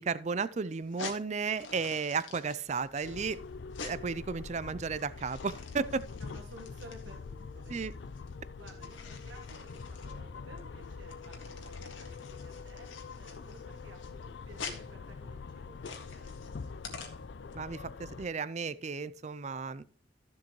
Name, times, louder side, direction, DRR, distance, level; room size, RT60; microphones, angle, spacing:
voice 1, 0.0-3.4 3.8-6.0 7.7-7.9 17.5-19.8, right 5 dB, 35° right, 0.4 m, -34 dB
sound 1, 0.8-17.5, left 5 dB, 90° left, 2.0 m, -48 dB
sound 2, 3.0-18.3, left 4 dB, 65° left, 0.4 m, -44 dB
voice 2, 6.2-7.8 8.6-16.8, right 1 dB, 85° right, 1.5 m, -55 dB
14.0 x 7.3 x 3.1 m
head